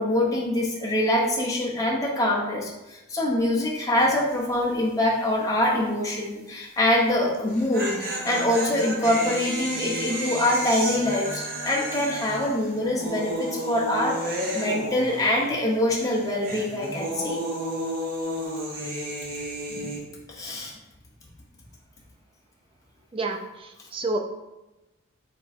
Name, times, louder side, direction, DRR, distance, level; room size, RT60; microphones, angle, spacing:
voice 1, 0.0-8.0 8.2-17.4 19.7-19.9 20.3-20.7, left 1 dB, 15° left, -2 dB, 0.8 m, -24 dB
sound 1, 4.0-4.3 4.6-4.7 7.3-15.7 16.0-20.0, right 1 dB, 45° right, 0.9 m, -32 dB
voice 2, 23.1-24.2, right 2 dB, 25° right, 5 dB, 0.4 m, -29 dB
3.7 x 3.4 x 4.2 m, 1.0 s
head